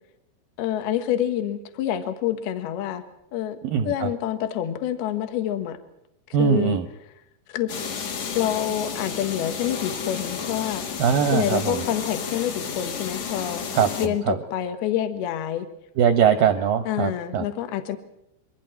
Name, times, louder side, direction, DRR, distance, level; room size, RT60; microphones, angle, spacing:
voice 1, 0.6-3.0 3.3-3.6 3.8-5.8 6.4-6.8 7.5-7.7 8.3-11.0 11.3-13.6 14.0-15.7 16.9-18.0, left 11 dB, 65° left, 8 dB, 3.3 m, -27 dB
voice 2, 3.6-4.1 6.3-6.9 11.0-11.9 13.7-14.4 16.0-17.5, right 8 dB, 70° right, 9 dB, 2.2 m, -21 dB
sound 1, 7.7-14.1, left 6 dB, 50° left, 2.5 m, -32 dB
28.0 x 23.5 x 4.6 m, 0.81 s
omnidirectional pair, 5.3 m